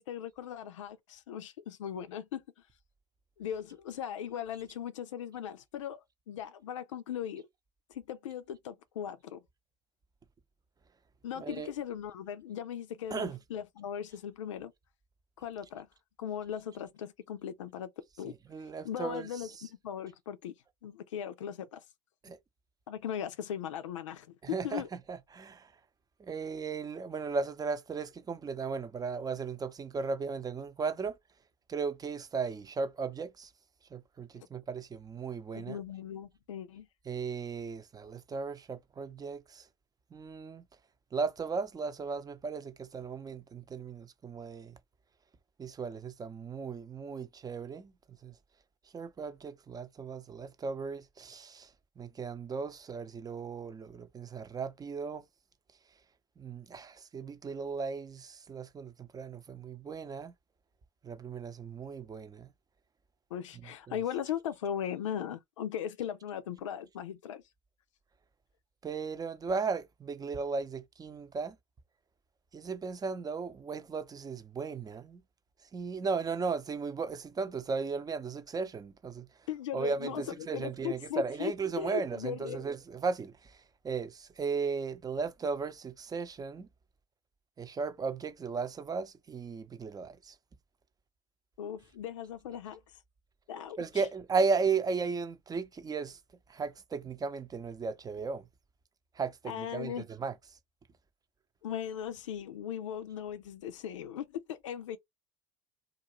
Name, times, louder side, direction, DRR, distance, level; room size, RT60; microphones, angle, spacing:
voice 1, 0.0-2.4 3.4-7.5 7.9-9.4 11.2-14.7 15.4-15.9 16.2-17.9 18.2-18.3 18.8-20.6 20.8-21.8 22.9-24.9 34.3-34.5 35.5-36.9 63.3-67.4 79.5-80.2 80.5-82.6 91.6-92.8 93.5-93.8 99.4-100.1 101.6-105.0, left 9 dB, 85° left, 0.5 m, -38 dB
voice 2, 11.4-11.7 13.1-13.4 18.2-19.6 22.2-22.4 24.4-24.8 25.1-25.7 26.2-31.2 31.7-33.5 33.9-35.8 37.1-39.7 40.1-40.6 41.1-44.8 45.6-47.9 48.2-48.3 48.9-51.7 52.0-55.2 56.4-60.3 61.0-62.5 63.9-64.0 68.8-71.6 72.5-75.2 75.7-79.3 79.7-86.7 87.6-90.4 93.8-96.2 96.5-98.4 99.1-100.3, right 5 dB, 25° right, 0.7 m, -36 dB
2.5 x 2.4 x 3.0 m
hypercardioid pair, 85°, 16 cm